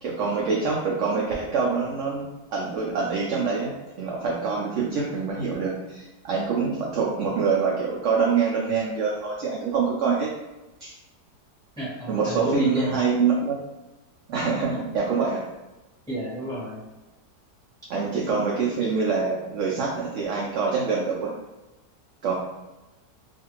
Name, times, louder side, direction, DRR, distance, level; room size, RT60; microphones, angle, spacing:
voice 1, 0.0-2.2 2.5-3.7 4.0-10.3 10.8-10.9 12.1-13.6 14.3-15.4 17.9-21.3 22.2-22.3, right 5 dB, 80° right, -3 dB, 0.6 m, -25 dB
voice 2, 11.8-12.9 16.1-16.8, equal, 5° left, -8 dB, 0.8 m, -31 dB
2.6 x 2.5 x 2.9 m, 1.0 s
omnidirectional pair, 1.8 m